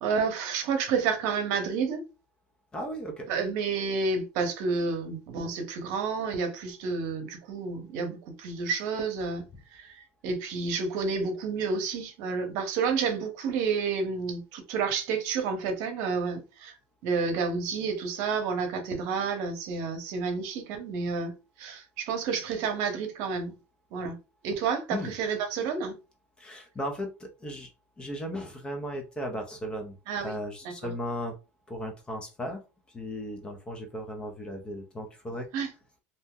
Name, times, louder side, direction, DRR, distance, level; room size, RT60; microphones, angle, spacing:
voice 1, 0.0-2.0 3.3-9.5 9.7-16.8 17.0-23.6 23.9-24.2 24.4-26.0 30.1-30.4 30.6-30.9 35.5-35.7, right 5 dB, 55° right, 0.9 m, -30 dB
voice 2, 2.7-3.3 24.9-25.1 26.4-27.7 28.0-31.3 31.7-35.5, equal, 15° left, 0.5 m, -36 dB
2.7 x 2.1 x 3.6 m
supercardioid pair, 160°, 7 cm